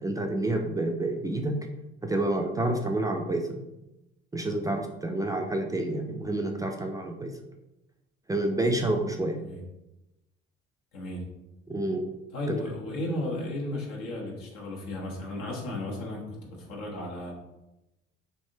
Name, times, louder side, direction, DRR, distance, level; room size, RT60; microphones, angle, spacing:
voice 1, 0.0-1.5 2.0-3.6 4.3-7.3 8.3-9.4 11.7-12.1 12.5-12.6, right 2 dB, 10° right, 2 dB, 0.4 m, -28 dB
voice 2, 10.9-11.2 12.3-17.3, left 1 dB, 75° left, -2 dB, 1.0 m, -34 dB
3.3 x 2.6 x 2.7 m, 0.94 s
hypercardioid pair, 60°, 29 cm